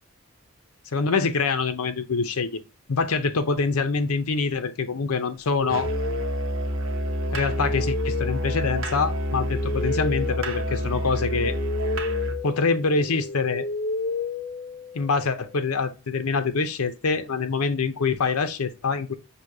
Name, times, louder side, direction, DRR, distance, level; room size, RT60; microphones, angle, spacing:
voice 1, 0.9-2.6 2.9-5.9 7.3-11.6 12.4-13.7 14.9-19.1, left 4 dB, 90° left, 0.7 m, -25 dB
sound 1, 5.6-15.2, left 3 dB, 35° left, 0.4 m, -33 dB
Musical instrument, 5.7-12.4, equal, 65° right, 1.0 m, -28 dB
6.2 x 2.8 x 2.7 m
head